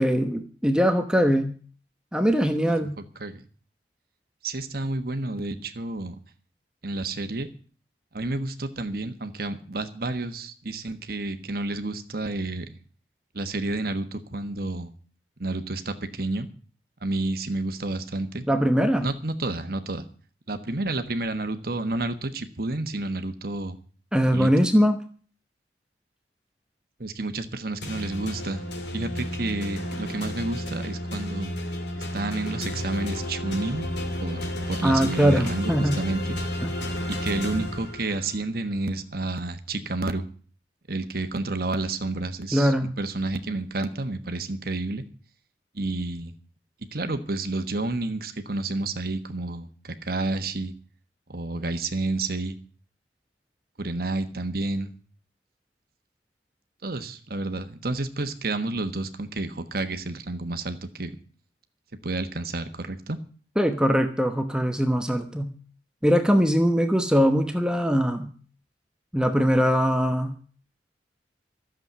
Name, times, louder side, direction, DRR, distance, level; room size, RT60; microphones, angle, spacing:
voice 1, 0.0-1.5 2.1-2.9 18.5-19.1 24.1-25.0 34.8-36.0 36.6-36.7 42.5-42.9 63.6-65.5 66.0-68.3 69.1-70.3, equal, 5° right, 6 dB, 1.0 m, -21 dB
voice 2, 2.8-3.4 4.4-6.1 6.8-7.5 8.1-12.8 13.3-14.9 15.4-16.5 17.0-18.5 19.0-20.1 20.5-23.8 24.3-24.7 27.0-28.6 28.9-31.5 31.9-33.9 34.2-36.4 37.1-40.3 40.9-45.0 45.7-46.3 46.9-50.7 51.3-52.6 53.8-54.9 56.8-61.1 62.0-63.2, right 2 dB, 55° right, 8 dB, 1.4 m, -30 dB
sound 1, 27.8-38.4, left 1 dB, 75° left, 2.7 m, -32 dB
13.0 x 7.5 x 9.4 m, 0.42 s
head